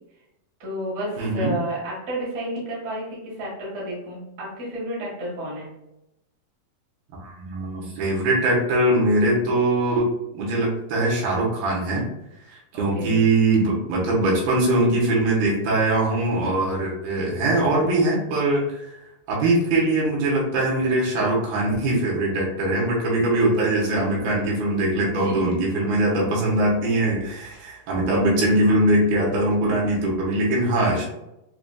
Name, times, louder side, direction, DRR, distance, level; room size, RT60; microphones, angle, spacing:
voice 1, 0.6-5.7 12.7-13.2 25.0-25.5, right 1 dB, 60° right, -6 dB, 0.9 m, -31 dB
voice 2, 1.2-1.6 7.2-12.1 12.5-18.9 19.3-31.1, right 1 dB, 80° right, -4 dB, 3.0 m, -22 dB
6.8 x 2.5 x 2.3 m, 0.88 s
omnidirectional pair, 4.3 m